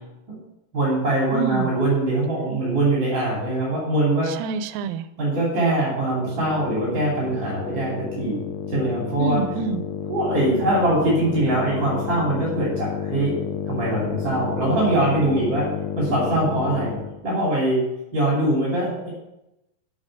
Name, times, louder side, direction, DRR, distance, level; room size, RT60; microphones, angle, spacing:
voice 1, 0.7-4.3 5.2-8.4 8.7-9.4 10.1-13.3 13.7-15.7 16.0-17.0 17.2-17.8 18.1-19.1, right 1 dB, 35° right, -5 dB, 3.3 m, -22 dB
voice 2, 1.3-1.7 4.3-5.1 9.2-9.9, right 7 dB, 90° right, 12 dB, 2.3 m, -27 dB
sound 1, 6.0-17.2, left 7 dB, 90° left, 2.8 m, -31 dB
7.4 x 6.9 x 6.6 m, 0.90 s
omnidirectional pair, 3.9 m